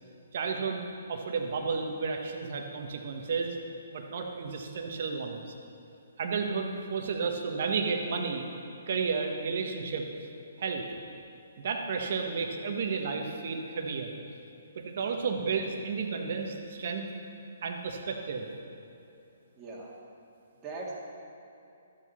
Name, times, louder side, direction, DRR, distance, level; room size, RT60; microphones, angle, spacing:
voice 1, 0.3-3.5 3.9-5.4 6.2-8.5 8.9-10.1 10.6-10.8 11.6-14.1 14.8-17.1 17.6-18.5, right 5 dB, 55° right, 3 dB, 1.4 m, -32 dB
voice 2, 19.6-19.9 20.6-20.9, right 3 dB, 20° right, -5 dB, 2.2 m, -40 dB
12.5 x 7.7 x 5.7 m, 2.8 s
hypercardioid pair, 140°, 0 cm